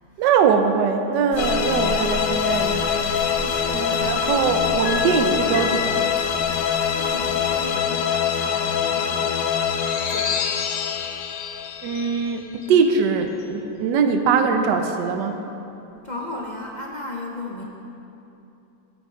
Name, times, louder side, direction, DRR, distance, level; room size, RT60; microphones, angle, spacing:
voice 1, 0.2-2.9 3.7-6.1 11.8-15.5, right 6 dB, 80° right, 6 dB, 1.3 m, -22 dB
sound 1, 1.3-7.8, right 1 dB, 65° right, 2.5 m, -37 dB
sound 2, 1.4-12.8, left 7 dB, 85° left, 1.3 m, -24 dB
voice 2, 3.3-4.4 7.0-9.3 10.1-10.7 16.0-17.6, left 2 dB, 50° left, -1 dB, 0.5 m, -36 dB
12.5 x 7.4 x 4.4 m, 2.9 s
omnidirectional pair, 1.9 m